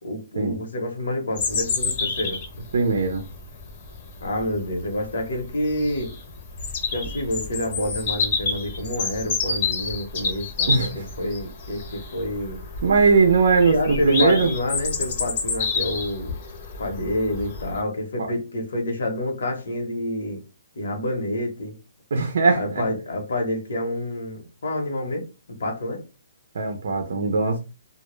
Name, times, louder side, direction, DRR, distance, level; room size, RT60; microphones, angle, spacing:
voice 1, 0.0-2.4 4.2-6.1 6.9-12.6 13.6-16.3 16.8-20.4 20.7-21.8 22.5-25.3 25.6-26.0, left 1 dB, 75° left, 0.8 m, -28 dB
Bird vocalization bird call bird song, 1.4-17.8, left 4 dB, 35° left, 0.7 m, -29 dB
voice 2, 2.7-3.2 10.7-11.0 12.8-14.5 18.2-18.3 22.1-22.9 26.5-27.6, right 4 dB, 65° right, 0.5 m, -20 dB
2.1 x 2.0 x 3.0 m
hypercardioid pair, 165°, 0 cm